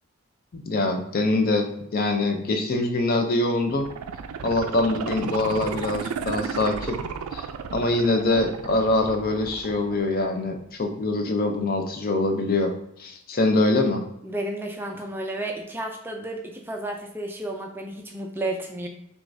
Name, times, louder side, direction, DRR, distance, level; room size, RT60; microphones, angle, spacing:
voice 1, 0.7-3.9 4.4-7.0 7.3-7.5 7.7-12.7 13.0-14.0, left 2 dB, 45° left, 4 dB, 0.5 m, -24 dB
sound 1, 3.6-10.6 11.0-11.1, right 6 dB, 85° right, 0.3 m, -34 dB
voice 2, 14.2-18.9, right 1 dB, 10° right, 2 dB, 0.3 m, -32 dB
6.2 x 2.3 x 2.6 m, 0.76 s
head